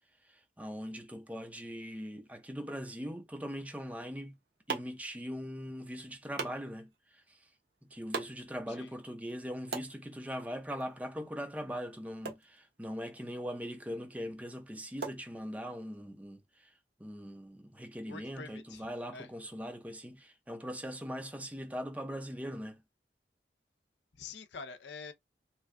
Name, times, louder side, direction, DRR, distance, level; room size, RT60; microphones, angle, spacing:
voice 1, 0.2-4.4 4.7-7.5 7.9-16.7 17.0-22.8, equal, 10° right, 0.5 m, -41 dB
sound 1, 4.0-16.0, right 4 dB, 65° right, 1.0 m, -46 dB
voice 2, 18.1-18.9 19.1-19.3 24.1-25.1, left 4 dB, 80° left, 0.6 m, -46 dB
3.2 x 2.2 x 3.5 m
head